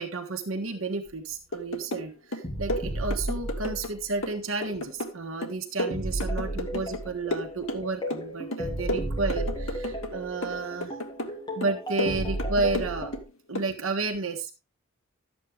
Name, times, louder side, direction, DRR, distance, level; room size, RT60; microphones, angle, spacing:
voice 1, 0.0-11.0 11.5-13.1 13.5-14.5, right 3 dB, 75° right, 3 dB, 1.3 m, -31 dB
sound 1, 1.1-1.2 2.4-4.2 5.9-13.2, right 1 dB, 20° left, 2.8 m, -34 dB
sound 2, 1.5-2.1 2.3-3.9 4.2-7.0 7.3-8.3 8.5-10.1 10.4-11.3 11.6-13.2 13.5-13.7, left 1 dB, 70° left, 1.6 m, -33 dB
12.5 x 8.4 x 3.5 m, 0.28 s
head